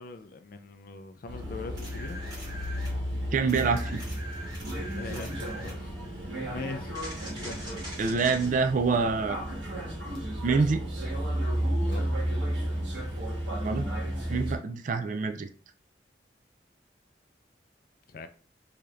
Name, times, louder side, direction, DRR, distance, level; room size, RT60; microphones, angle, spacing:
voice 1, 0.0-2.2 4.9-7.0 7.4-7.7 11.8-12.1 18.1-18.3, left 3 dB, 55° left, 0.4 m, -41 dB
sound 1, 1.3-14.6, equal, 90° right, 1.3 m, -33 dB
sound 2, 1.8-3.0 3.5-5.8 6.9-8.5 11.9-12.0, right 1 dB, 25° right, 1.4 m, -43 dB
voice 2, 3.3-4.0 8.0-9.4 10.4-10.8 13.6-13.9 14.3-15.5, right 4 dB, 45° right, 0.4 m, -26 dB
5.0 x 2.8 x 2.4 m
head